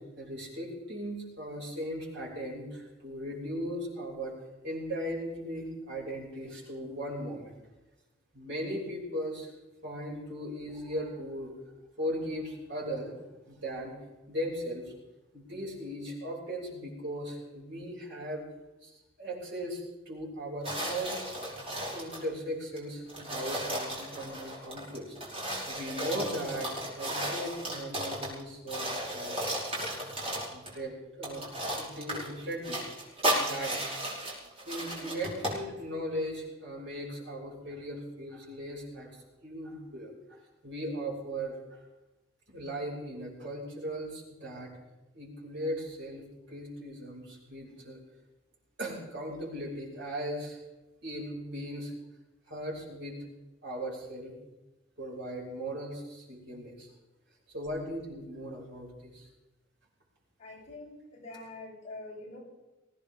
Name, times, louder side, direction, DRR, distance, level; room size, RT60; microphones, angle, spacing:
voice 1, 0.2-4.4 4.6-7.6 8.3-9.5 9.8-11.5 12.0-13.1 13.5-14.0 14.3-14.9 15.3-18.5 18.8-21.2 21.9-29.6 30.5-32.8 33.4-33.8 34.7-40.1 40.6-41.8 42.5-44.7 45.1-48.0 48.8-50.6 51.0-51.9 52.5-53.2 53.6-54.3 55.0-56.9 57.5-59.3, equal, 60° right, -3 dB, 6.1 m, -38 dB
sound 1, 20.6-22.3 22.8-22.9 23.1-28.4 28.7-30.8 31.2-35.6, right 1 dB, 30° right, 5.3 m, -34 dB
voice 2, 60.4-62.4, left 2 dB, 35° left, -7 dB, 7.6 m, -45 dB
21.5 x 17.0 x 3.6 m, 1.1 s
head